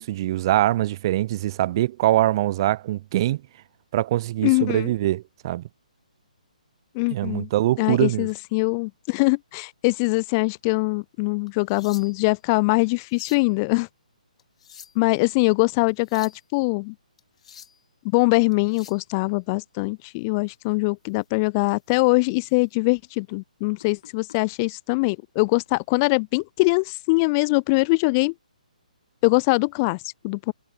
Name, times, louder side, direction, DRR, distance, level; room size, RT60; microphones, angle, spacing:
voice 1, 0.0-3.4 3.9-5.6 7.1-8.3, right 15 dB, 35° right, 0.6 m, -23 dB
voice 2, 4.4-4.9 6.9-7.5 7.8-13.9 15.0-16.9 18.0-28.3 29.2-30.5, left 28 dB, 25° left, 0.5 m, -22 dB
sound 1, 11.5-12.4 12.9-13.5 14.4-15.1 15.9-16.4 17.2-17.8 18.5-19.1 21.1-21.3 21.8-22.0 22.5-22.6 23.8-24.4 25.5-25.7, left 8 dB, 50° left, 4.0 m, -48 dB
figure-of-eight pair, 135°, 4 cm